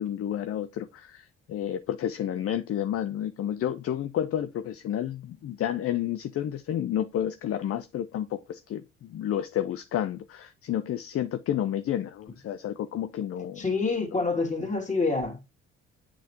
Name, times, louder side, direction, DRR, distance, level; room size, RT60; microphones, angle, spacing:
voice 1, 0.0-13.6 14.1-14.2, left 10 dB, 50° left, 0.6 m, -30 dB
voice 2, 13.6-15.4, left 3 dB, 25° left, 2.7 m, -27 dB
8.4 x 4.0 x 3.0 m
hypercardioid pair, 50°, 30 cm